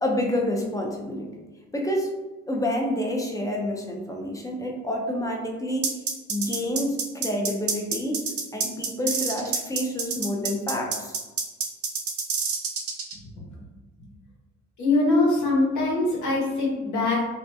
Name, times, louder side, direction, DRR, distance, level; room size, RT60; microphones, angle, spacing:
voice 1, 0.0-1.3 1.7-2.1 2.5-6.0 6.3-8.2 8.5-11.1, left 1 dB, 10° left, 1 dB, 0.4 m, -28 dB
sound 1, 5.8-13.1, right 5 dB, 50° right, 0.6 m, -27 dB
voice 2, 14.8-17.3, left 2 dB, 75° left, -3 dB, 1.0 m, -22 dB
2.4 x 2.2 x 2.6 m, 1.2 s
cardioid pair, 90°, 30 cm